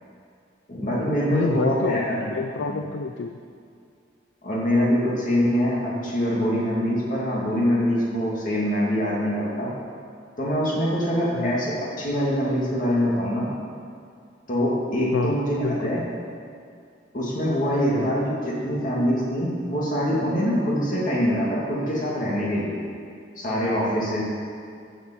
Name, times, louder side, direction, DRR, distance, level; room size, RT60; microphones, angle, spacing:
voice 1, 0.7-2.2 2.7-2.8 4.4-9.7 10.4-13.5 14.5-16.0 17.1-22.8 23.4-24.2, equal, 45° left, -5 dB, 2.4 m, -24 dB
voice 2, 1.3-3.4 11.3-11.6 15.1-16.1 17.9-18.1, left 3 dB, 80° left, 6 dB, 0.5 m, -28 dB
11.5 x 7.1 x 7.8 m, 2.3 s
head